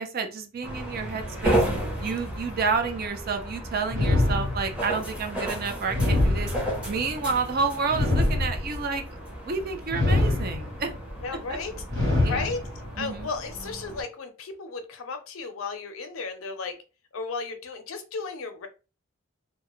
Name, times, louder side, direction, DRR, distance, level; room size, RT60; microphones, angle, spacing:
voice 1, 0.0-1.6 2.0-6.5 6.9-9.0 9.5-10.9 12.2-12.4 13.0-13.3, right 4 dB, 45° right, 6 dB, 0.4 m, -29 dB
sound 1, 0.6-14.0, right 1 dB, 5° right, 0.6 m, -33 dB
sound 2, 3.9-5.0 5.9-7.0 7.9-9.0 9.9-10.9 11.9-12.9, left 2 dB, 80° right, 1.1 m, -24 dB
voice 2, 11.2-11.7 12.2-12.6 13.0-16.8 17.1-18.7, left 4 dB, 80° left, 8 dB, 0.5 m, -34 dB
2.2 x 2.0 x 2.9 m, 0.32 s
head